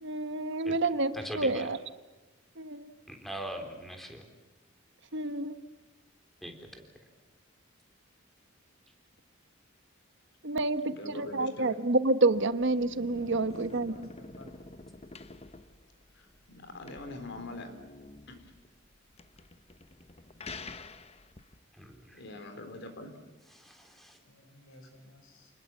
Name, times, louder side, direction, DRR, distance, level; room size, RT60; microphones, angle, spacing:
voice 1, 0.0-1.8 2.6-2.9 5.1-5.5 10.4-14.1, right 2 dB, 60° right, 11 dB, 1.2 m, -29 dB
voice 2, 1.1-1.7 3.1-4.2 6.4-6.8 21.7-22.2 23.5-24.2, right 1 dB, ahead, 3 dB, 3.6 m, -41 dB
voice 3, 10.9-11.7 16.1-17.7 18.3-18.5 22.1-23.2, left 2 dB, 60° left, 8 dB, 3.8 m, -43 dB
sound 1, 12.3-21.6, left 3 dB, 30° left, 1.0 m, -48 dB
voice 4, 13.3-14.6 19.4-19.5 24.3-25.6, left 1 dB, 80° left, 5 dB, 6.8 m, -56 dB
29.5 x 20.5 x 7.4 m, 1.1 s
head